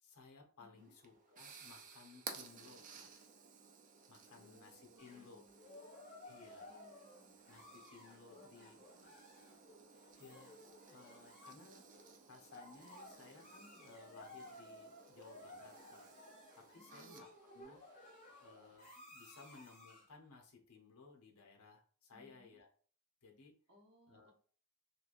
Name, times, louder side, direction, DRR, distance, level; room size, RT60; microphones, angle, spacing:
voice 1, 0.0-3.1 4.1-5.4 6.2-6.7 7.5-8.8 10.2-10.5 10.9-11.9 12.3-16.1 16.5-17.8 18.4-22.7 23.2-23.5 24.1-24.3, left 4 dB, 70° left, 1 dB, 0.8 m, -60 dB
voice 2, 0.6-1.0 4.3-5.8 6.5-7.3 8.3-9.1 16.8-17.3 22.1-22.6 23.7-24.3, equal, 50° right, -1 dB, 0.9 m, -67 dB
sound 1, 0.8-18.8, right 5 dB, 35° right, 0.4 m, -57 dB
sound 2, 5.0-20.2, left 1 dB, 35° left, 1.2 m, -57 dB
3.1 x 2.4 x 2.5 m, 0.43 s
head